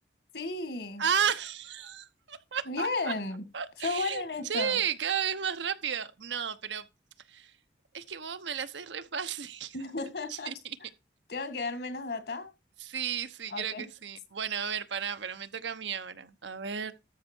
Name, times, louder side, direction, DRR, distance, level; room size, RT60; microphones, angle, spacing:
voice 1, 0.3-1.0 2.7-3.4 3.8-4.8 9.7-10.5 11.3-12.5 13.5-13.8, left 3 dB, 60° left, 1.9 m, -34 dB
voice 2, 1.0-3.1 3.5-6.9 7.3-7.5 7.9-9.8 10.3-10.8 12.8-16.9, right 7 dB, 80° right, 0.9 m, -33 dB
13.0 x 5.6 x 4.5 m
head